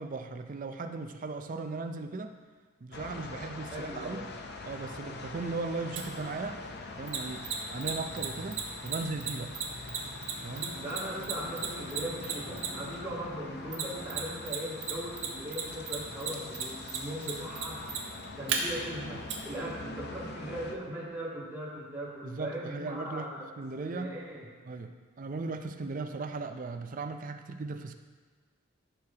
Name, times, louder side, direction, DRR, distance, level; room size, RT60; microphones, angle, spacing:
voice 1, 0.0-2.3 2.8-4.2 4.7-6.6 7.0-9.5 10.4-10.8 13.1-13.2 22.2-24.2 24.6-28.0, right 3 dB, 40° right, 7 dB, 0.4 m, -37 dB
sound 1, 2.9-20.7, left 3 dB, 50° left, 0.6 m, -44 dB
voice 2, 3.7-4.3 10.7-17.9 18.4-23.4 23.8-24.5, right 1 dB, 10° right, -9 dB, 2.3 m, -39 dB
Mechanisms, 5.9-6.0 7.1-12.9 13.7-14.6 14.8-18.6 19.3-19.4, right 9 dB, 65° right, 1.3 m, -33 dB
Bowed string instrument, 10.4-14.7, left 1 dB, 70° left, 1.4 m, -47 dB
14.0 x 6.5 x 2.9 m, 1.5 s
head